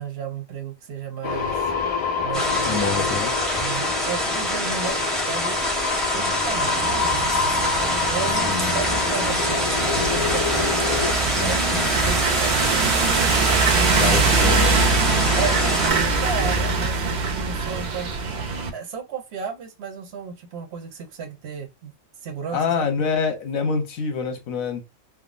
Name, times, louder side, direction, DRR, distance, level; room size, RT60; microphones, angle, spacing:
voice 1, 0.0-1.7 2.2-3.2 3.6-5.0 5.2-5.7 6.1-7.5 8.1-13.0 15.4-18.1 18.7-21.9 22.2-23.1, right 6 dB, 60° right, 0.7 m, -34 dB
sound 1, 1.2-11.1, left 5 dB, 50° left, 0.4 m, -27 dB
sound 2, 2.3-15.9, left 1 dB, ahead, 0.6 m, -26 dB
voice 2, 2.6-3.3 6.1-6.2 8.5-8.7 11.4-11.9 13.9-14.7 22.5-24.8, left 5 dB, 80° left, 1.2 m, -26 dB
sound 3, 6.5-18.7, right 4 dB, 85° right, 0.4 m, -23 dB
3.5 x 2.0 x 2.4 m
omnidirectional pair, 1.4 m